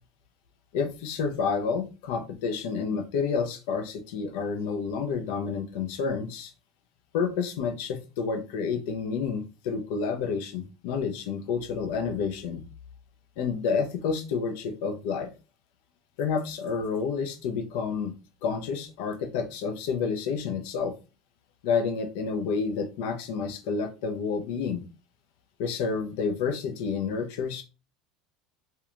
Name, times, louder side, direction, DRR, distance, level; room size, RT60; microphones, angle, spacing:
voice 1, 0.7-6.5 7.1-12.6 13.4-15.3 16.2-18.1 18.4-20.9 21.6-24.8 25.6-27.6, left 5 dB, 75° left, 6 dB, 0.5 m, -29 dB
2.8 x 2.2 x 2.4 m, 0.31 s
supercardioid pair, 115°, 0 cm